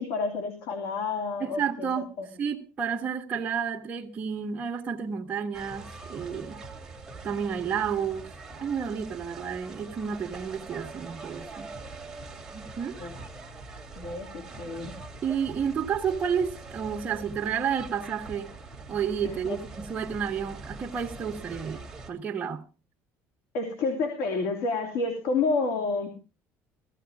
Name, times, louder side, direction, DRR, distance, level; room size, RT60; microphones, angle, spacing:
voice 1, 0.0-2.3 13.0-13.1 14.0-14.9 19.2-19.6 23.5-26.1, left 3 dB, 90° left, 2.9 m, -30 dB
voice 2, 1.4-6.6 7.2-8.3 8.6-11.7 12.5-13.0 15.2-18.5 18.9-21.8 22.1-22.6, right 7 dB, 25° right, 1.7 m, -31 dB
sound 1, 5.5-22.1, right 3 dB, 5° right, 2.3 m, -43 dB
16.0 x 15.0 x 3.6 m
cardioid pair, 165°, 6 cm